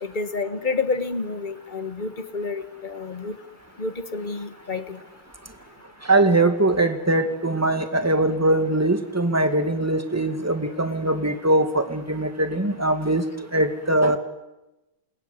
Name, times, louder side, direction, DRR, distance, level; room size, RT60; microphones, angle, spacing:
voice 1, 0.0-3.4 3.8-5.0, left 4 dB, 25° left, 10 dB, 1.4 m, -29 dB
voice 2, 6.0-13.3 13.5-14.2, right 2 dB, 10° right, 7 dB, 1.9 m, -21 dB
28.0 x 20.5 x 9.7 m, 1.0 s
omnidirectional pair, 2.3 m